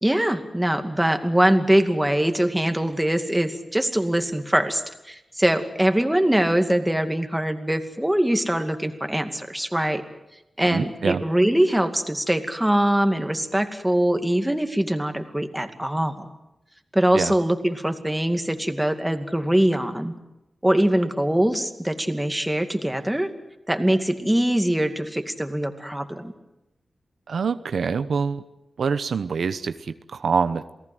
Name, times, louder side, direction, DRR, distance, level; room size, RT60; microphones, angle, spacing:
voice 1, 0.0-10.0 10.6-16.3 16.9-20.2 20.6-23.3 23.7-26.3, right 1 dB, 10° right, 6 dB, 2.3 m, -22 dB
voice 2, 10.7-11.2 17.1-17.3 27.3-28.4 28.8-30.7, right 5 dB, 90° right, 12 dB, 0.9 m, -25 dB
28.0 x 18.5 x 7.9 m, 0.94 s
wide cardioid pair, 85°, 0 cm